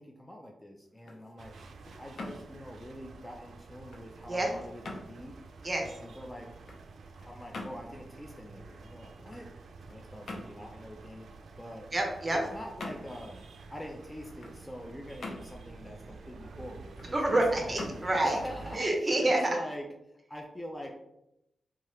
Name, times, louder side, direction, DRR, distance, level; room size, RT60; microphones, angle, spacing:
voice 1, 0.0-1.5 2.0-5.4 5.8-6.5 7.2-9.5 9.9-11.3 11.6-11.9 12.3-13.4 13.7-17.8 18.1-18.9 19.2-21.0, equal, 15° left, 1 dB, 0.4 m, -44 dB
sound 1, 0.8-19.7, left 2 dB, 70° left, 0.5 m, -48 dB
sound 2, 1.4-18.8, right 3 dB, 80° right, 0.3 m, -49 dB
voice 2, 11.9-12.4 17.1-18.4 18.7-19.4, right 1 dB, 30° right, 1 dB, 0.7 m, -27 dB
2.8 x 2.3 x 3.0 m, 0.86 s
cardioid pair, 75°, 0 cm